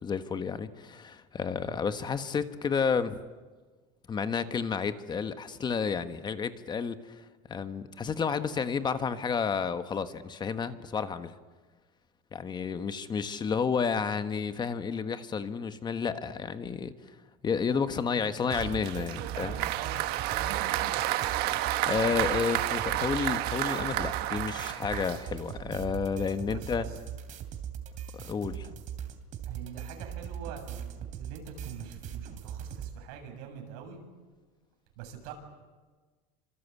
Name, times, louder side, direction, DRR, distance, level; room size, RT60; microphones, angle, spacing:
voice 1, 0.0-3.2 4.1-11.3 12.3-16.9 17.4-19.5 21.5-26.9 28.2-28.7, left 6 dB, 25° left, 1.3 m, -31 dB
voice 2, 18.0-18.5 19.1-21.0 26.5-27.0 29.5-34.0 35.0-35.3, right 7 dB, 85° right, 7.2 m, -44 dB
sound 1, 18.5-32.9, right 9 dB, 45° right, 2.9 m, -40 dB
Applause, 18.5-25.6, right 15 dB, 60° right, 1.4 m, -31 dB
27.5 x 26.0 x 8.4 m
cardioid pair, 145°, 19 cm